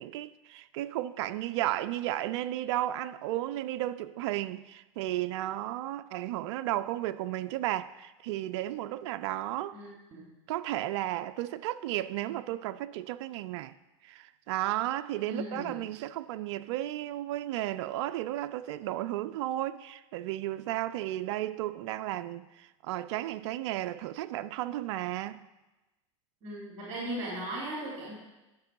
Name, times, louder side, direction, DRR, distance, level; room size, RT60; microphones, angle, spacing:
voice 1, 0.0-9.8 10.5-13.7 14.0-25.4, right 14 dB, 65° right, 0.4 m, -34 dB
voice 2, 9.7-10.3 15.2-15.8 26.4-28.2, right 1 dB, 40° right, 2.8 m, -38 dB
11.0 x 6.0 x 4.6 m
hypercardioid pair, 115°, 16 cm